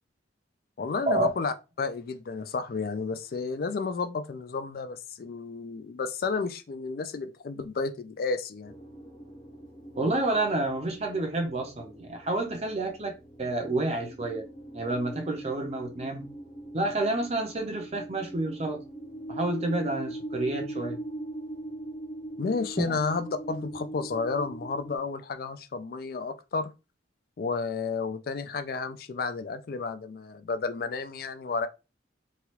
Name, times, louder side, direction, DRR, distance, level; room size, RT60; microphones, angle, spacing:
voice 1, 0.8-8.7 22.4-26.7 27.4-31.7, left 4 dB, 50° left, 0.3 m, -32 dB
sound 1, 8.6-25.0, right 1 dB, 20° left, 0.8 m, -41 dB
voice 2, 9.9-14.4 14.7-16.3 16.7-18.8 19.3-21.0 22.8-23.0, right 2 dB, 35° right, 0.5 m, -29 dB
3.1 x 2.4 x 2.9 m
head